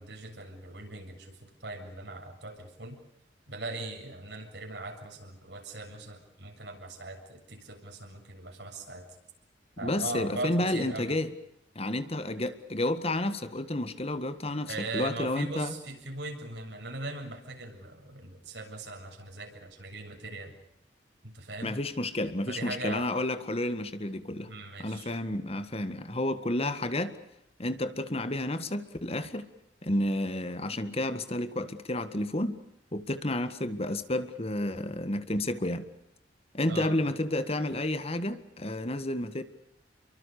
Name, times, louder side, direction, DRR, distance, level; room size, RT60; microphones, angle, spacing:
voice 1, 0.0-3.0 3.5-9.1 9.8-11.2 14.7-20.5 21.2-21.8 22.5-23.0 24.5-25.1 36.7-36.9, right 2 dB, 70° right, 3 dB, 7.4 m, -40 dB
voice 2, 9.8-11.3 11.8-15.7 21.6-24.5 24.8-27.2 27.6-29.5 29.8-32.6 32.9-35.9 36.5-39.4, left 1 dB, 35° left, 11 dB, 1.8 m, -31 dB
30.0 x 24.0 x 6.8 m, 0.79 s
head